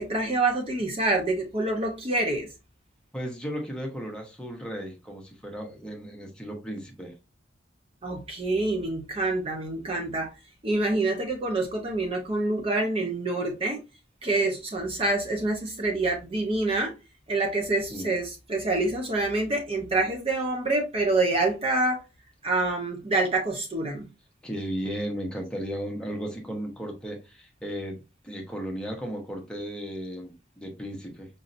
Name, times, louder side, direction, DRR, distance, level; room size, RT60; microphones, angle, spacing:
voice 1, 0.0-2.5 8.0-10.3 10.6-13.8 14.2-16.9 17.3-22.0 22.4-24.1, right 2 dB, 30° right, 0.7 m, -26 dB
voice 2, 3.1-7.1 17.9-18.1 24.4-28.0 28.2-31.3, equal, 5° left, 0.9 m, -35 dB
5.2 x 2.7 x 2.5 m
head